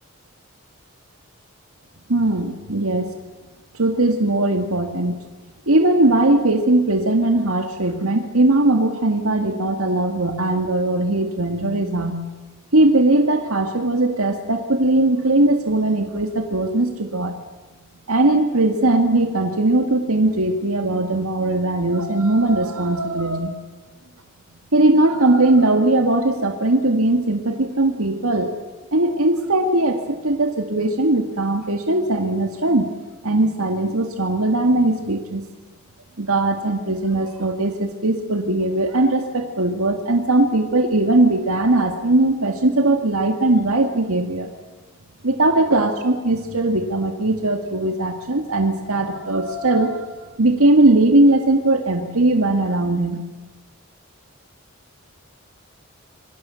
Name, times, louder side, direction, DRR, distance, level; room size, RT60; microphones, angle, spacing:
voice 1, 2.1-3.1 3.7-5.2 5.7-12.2 12.7-17.4 18.1-23.6 24.7-28.5 28.9-32.9 33.2-35.4 36.2-44.5 45.2-53.2, right 2 dB, 85° right, 5 dB, 2.0 m, -19 dB
27.5 x 24.0 x 7.0 m, 1.2 s
head